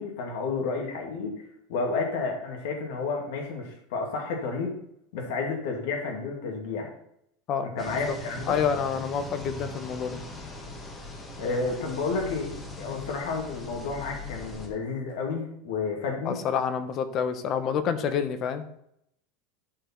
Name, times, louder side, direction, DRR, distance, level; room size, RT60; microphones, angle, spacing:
voice 1, 0.0-1.4 1.7-4.8 5.1-6.9 7.6-8.6 11.4-12.5 12.8-16.4, left 4 dB, 70° left, 1 dB, 2.3 m, -31 dB
voice 2, 7.5-8.1 8.5-10.2 16.2-18.6, left 7 dB, 35° left, 10 dB, 0.9 m, -28 dB
sound 1, 7.8-14.7, left 2 dB, 15° left, 1.3 m, -40 dB
11.0 x 4.5 x 4.5 m, 0.74 s
supercardioid pair, 160°, 0 cm